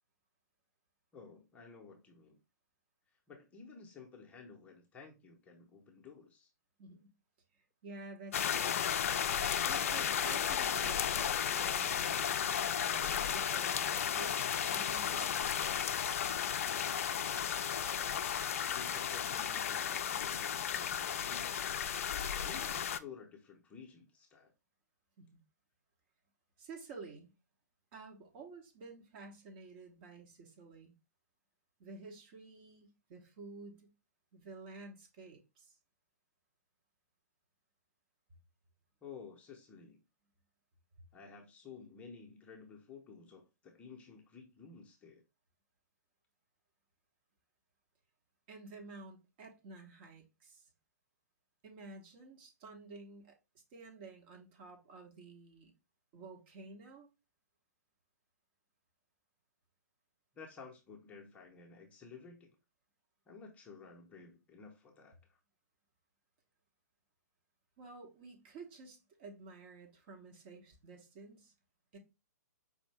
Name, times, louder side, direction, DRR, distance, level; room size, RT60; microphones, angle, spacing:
voice 1, 1.1-2.4 3.3-6.5 18.7-21.6 22.4-24.5 39.0-40.0 41.1-45.2 60.4-62.6 63.3-65.4, left 5 dB, 15° left, 0.7 m, -53 dB
voice 2, 6.8-7.1 7.5-8.8 9.3-14.4 14.7-15.6 25.2-25.4 26.6-27.3 27.9-30.9 31.8-33.9 34.3-35.8 48.5-50.7 51.6-53.3 53.7-55.7 56.1-57.1 67.8-71.5 71.9-72.0, right 3 dB, 35° right, 1.0 m, -51 dB
sound 1, 8.3-23.0, left 8 dB, 50° left, 0.3 m, -34 dB
5.0 x 2.6 x 3.2 m
figure-of-eight pair, 120°, 9 cm